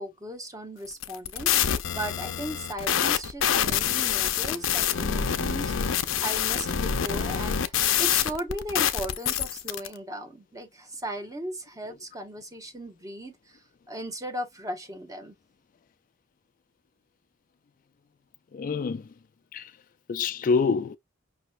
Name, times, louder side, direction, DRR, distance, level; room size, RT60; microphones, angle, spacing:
voice 1, 0.0-15.4, right 1 dB, 15° right, 1.1 m, -37 dB
sound 1, 0.9-9.9, left 9 dB, 85° left, 0.6 m, -26 dB
voice 2, 18.5-19.1 19.5-19.7 20.1-21.0, left 5 dB, 45° left, 0.3 m, -26 dB
5.6 x 3.0 x 2.5 m
head